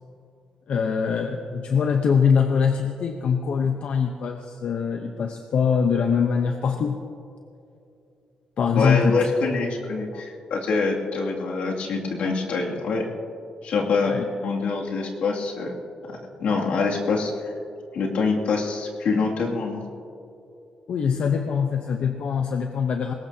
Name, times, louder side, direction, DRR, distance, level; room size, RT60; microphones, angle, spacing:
voice 1, 0.7-7.0 8.6-9.3 10.1-10.2 14.0-14.3 20.9-23.1, left 6 dB, 65° left, 4 dB, 0.9 m, -23 dB
voice 2, 8.8-13.1 13.6-14.1 14.4-15.7 16.4-17.5 17.9-19.8, left 4 dB, 80° left, -2 dB, 2.5 m, -25 dB
21.0 x 18.5 x 2.8 m, 2.6 s
cardioid pair, 115°, 2 cm